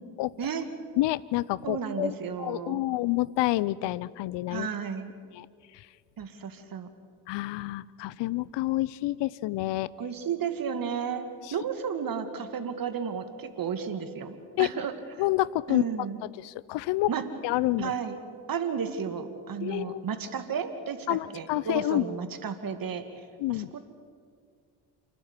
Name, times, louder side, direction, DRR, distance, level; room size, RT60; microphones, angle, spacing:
voice 1, 1.0-4.7 5.3-5.5 7.3-9.9 11.4-11.5 14.6-14.7 15.2-15.8 16.4-17.1 17.4-17.9 19.6-20.0 21.1-22.1 23.4-23.7, left 17 dB, 65° left, 21 dB, 0.8 m, -28 dB
voice 2, 1.6-2.8 4.5-5.1 6.2-6.9 10.0-14.9 15.7-16.2 17.1-17.2 17.8-18.2 18.5-23.0 23.5-23.8, right 7 dB, 45° right, 9 dB, 2.5 m, -33 dB
28.5 x 12.0 x 9.9 m, 2.1 s
hypercardioid pair, 60°, 46 cm